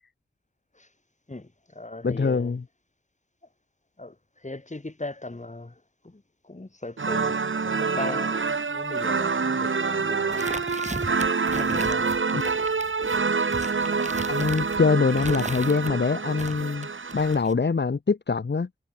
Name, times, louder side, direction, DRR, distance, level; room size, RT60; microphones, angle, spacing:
voice 1, 1.3-2.6 4.0-10.6 11.4-12.2, left 2 dB, 40° left, 6.6 m, -39 dB
voice 2, 2.0-2.6 12.3-12.5 14.3-18.7, left 4 dB, 60° left, 1.2 m, -24 dB
sound 1, 7.0-17.4, right 4 dB, 85° right, 3.0 m, -27 dB
sound 2, 10.3-15.9 16.3-17.6, right 2 dB, 35° right, 3.1 m, -37 dB
wide cardioid pair, 50°, 20 cm